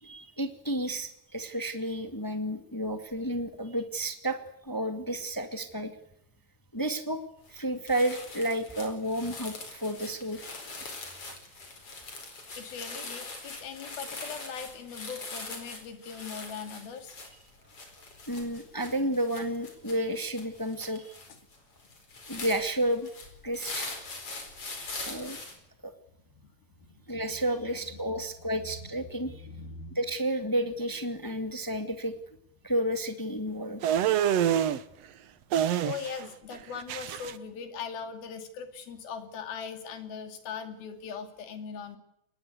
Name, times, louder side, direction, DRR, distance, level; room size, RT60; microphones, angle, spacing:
voice 1, 0.0-4.4 4.6-5.9 6.7-7.2 7.5-10.4 11.3-11.4 18.3-21.1 22.3-23.1 23.4-23.9 25.0-25.4 25.8-25.9 27.1-29.3 29.9-32.1 32.6-33.9, right 1 dB, 15° left, 7 dB, 0.7 m, -31 dB
sound 1, 7.5-7.6 7.9-25.5, left 3 dB, 40° left, 5.4 m, -42 dB
voice 2, 12.6-17.2 26.4-26.5 26.9-27.3 27.7-28.2 28.8-28.9 29.2-30.0 35.8-42.0, left 6 dB, 90° left, 8 dB, 4.5 m, -40 dB
sound 2, 33.8-34.8 35.5-36.3 36.5-37.3, right 10 dB, 65° right, 1.6 m, -26 dB
25.0 x 20.5 x 8.2 m, 0.78 s
omnidirectional pair, 4.1 m